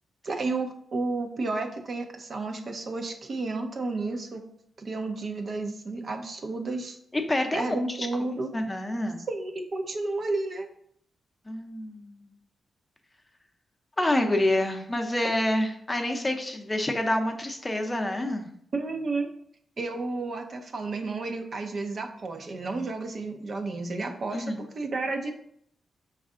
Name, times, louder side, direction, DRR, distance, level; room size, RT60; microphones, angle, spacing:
voice 1, 0.2-4.4 4.8-7.0 7.5-8.5 9.3-10.7 18.7-19.3 19.8-24.4 24.8-25.3, right 3 dB, 50° right, 4 dB, 0.6 m, -31 dB
voice 2, 7.1-8.1 8.5-9.2 11.5-12.3 14.0-18.5 24.3-24.7, left 1 dB, 20° left, 4 dB, 0.6 m, -27 dB
5.3 x 2.4 x 3.6 m, 0.67 s
cardioid pair, 95°, 0 cm